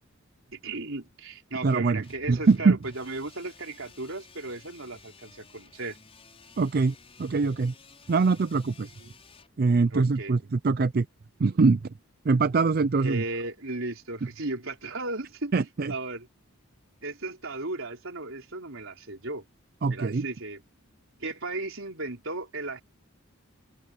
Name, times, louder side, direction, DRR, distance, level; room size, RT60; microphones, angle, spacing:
voice 1, 0.5-6.0 9.0-9.1 9.9-10.3 13.0-15.5 15.9-16.3 17.0-19.4 19.9-20.6 21.2-22.8, right 2 dB, 75° right, 4.3 m, -35 dB
voice 2, 1.6-2.8 6.6-7.7 8.1-8.9 9.6-11.1 11.4-11.8 12.2-13.2 15.5-15.9 19.8-20.3, right 4 dB, 45° right, 0.4 m, -23 dB
sound 1, 2.0-9.5, left 4 dB, 30° left, 6.3 m, -54 dB
open air
head